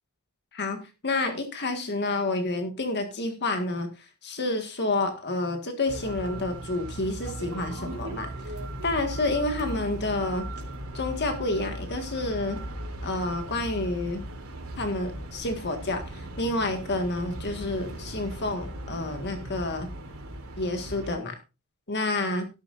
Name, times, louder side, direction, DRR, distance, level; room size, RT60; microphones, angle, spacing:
voice 1, 1.0-3.9 4.2-8.3 8.8-10.5 10.9-12.6 13.0-14.2 14.8-19.9 20.6-21.4 21.9-22.5, left 2 dB, 50° left, 6 dB, 1.8 m, -29 dB
sound 1, 5.9-21.1, right 1 dB, 70° right, 3.1 m, -38 dB
13.0 x 12.0 x 2.6 m, 0.29 s
head